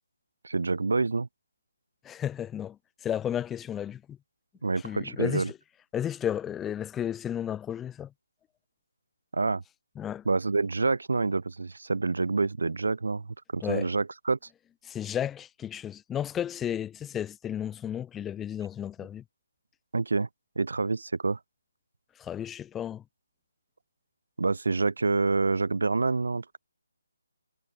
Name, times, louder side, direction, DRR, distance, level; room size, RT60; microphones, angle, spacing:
voice 1, 0.4-1.3 4.6-5.5 9.3-9.6 10.2-13.3 13.5-14.4 19.9-20.3 20.6-21.4 24.4-26.6, right 3 dB, 80° right, 1.3 m, -27 dB
voice 2, 2.0-2.8 3.0-4.2 4.8-5.6 5.9-8.1 10.0-10.2 13.6-13.9 14.8-19.2 22.2-23.0, left 10 dB, 5° left, 0.6 m, -33 dB
hypercardioid pair, 170°, 0 cm